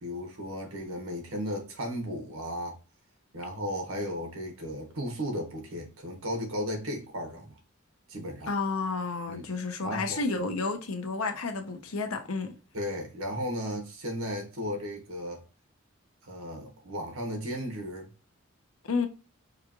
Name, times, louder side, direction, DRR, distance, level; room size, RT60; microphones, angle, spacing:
voice 1, 0.0-2.8 3.3-7.6 8.1-8.5 9.3-9.5 9.8-10.2 12.7-15.4 16.2-18.1, equal, 85° right, 1.4 m, -35 dB
voice 2, 8.5-12.5 18.8-19.1, left 4 dB, 85° left, 0.8 m, -31 dB
4.8 x 2.4 x 3.0 m
head